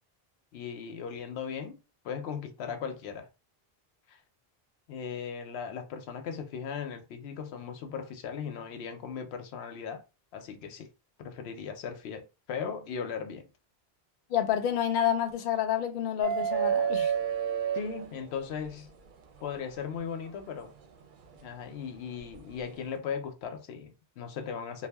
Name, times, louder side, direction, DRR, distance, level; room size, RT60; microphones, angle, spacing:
voice 1, 0.5-3.3 4.1-4.2 4.9-10.0 10.3-10.9 11.2-13.4 17.7-18.9 19.4-20.7 21.4-24.9, left 6 dB, 90° left, 0.8 m, -38 dB
voice 2, 14.3-17.1, left 10 dB, 60° left, 0.6 m, -28 dB
sound 1, 16.2-18.6 20.3-20.4 22.2-22.4, right 8 dB, 60° right, 0.6 m, -29 dB
2.3 x 2.0 x 3.3 m
omnidirectional pair, 1.0 m